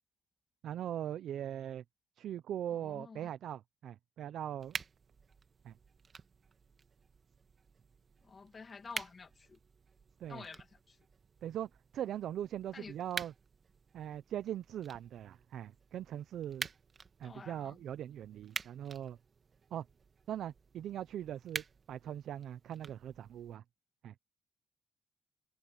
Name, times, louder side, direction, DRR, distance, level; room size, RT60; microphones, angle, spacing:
voice 1, 0.6-1.8 2.2-4.8 5.6-5.7 10.2-10.4 11.4-13.3 13.9-16.7 17.2-19.2 19.7-19.9 20.3-23.6 24.0-24.1, right 11 dB, 75° right, 0.6 m, -41 dB
voice 2, 2.7-3.3 8.2-9.6 10.3-11.0 12.7-13.0 17.2-17.8, left 4 dB, 35° left, 2.1 m, -50 dB
sound 1, 4.6-23.6, right 5 dB, 40° right, 1.7 m, -48 dB
cardioid pair, 90°, 0 cm